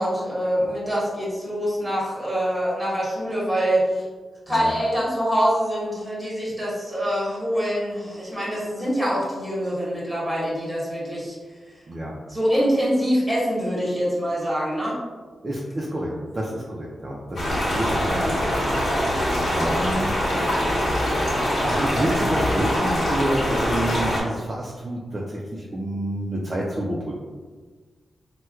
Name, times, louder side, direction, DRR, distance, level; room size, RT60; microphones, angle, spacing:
voice 1, 0.0-4.0 4.5-11.3 12.3-15.0, equal, 10° right, -7 dB, 1.1 m, -24 dB
voice 2, 15.4-27.1, right 1 dB, 30° right, -4 dB, 0.4 m, -29 dB
sound 1, 17.4-24.2, equal, 60° left, 1.1 m, -23 dB
4.3 x 2.1 x 2.3 m, 1.4 s
wide cardioid pair, 130°, 0 cm